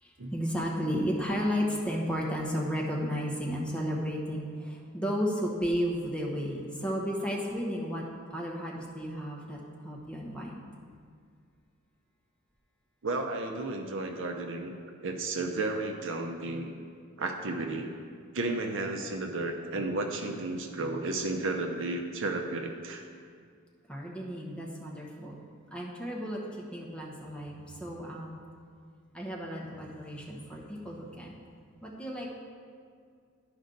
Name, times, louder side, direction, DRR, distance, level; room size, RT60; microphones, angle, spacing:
voice 1, 0.0-8.0 8.3-10.6 23.9-28.4 29.1-31.4 31.8-32.3, equal, 5° left, -3 dB, 1.1 m, -33 dB
voice 2, 13.0-14.7 15.0-16.7 17.2-17.9 18.3-23.0, right 2 dB, 60° right, 4 dB, 0.7 m, -33 dB
11.5 x 5.2 x 3.9 m, 2.1 s
head